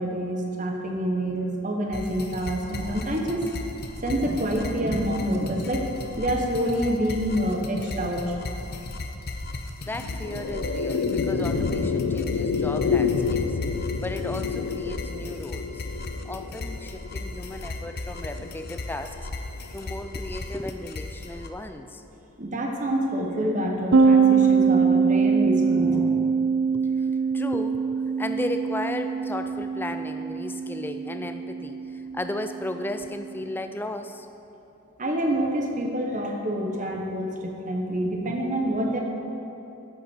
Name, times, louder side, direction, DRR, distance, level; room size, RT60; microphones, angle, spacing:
voice 1, 0.0-3.4 4.0-8.3 22.4-26.0 35.0-39.0, equal, 35° right, 2 dB, 1.0 m, -27 dB
sound 1, 1.9-21.5, left 2 dB, 45° left, 0.6 m, -36 dB
sound 2, 9.9-20.4, left 5 dB, 90° left, 0.5 m, -29 dB
voice 2, 9.9-13.6 14.0-15.8 16.3-19.2 19.7-22.0 25.8-26.5 26.7-27.9 28.2-34.3 38.2-38.4, left 1 dB, 10° left, 8 dB, 0.3 m, -35 dB
sound 3, 23.9-33.4, right 5 dB, 65° right, 0.4 m, -23 dB
11.0 x 8.6 x 4.4 m, 2.9 s
head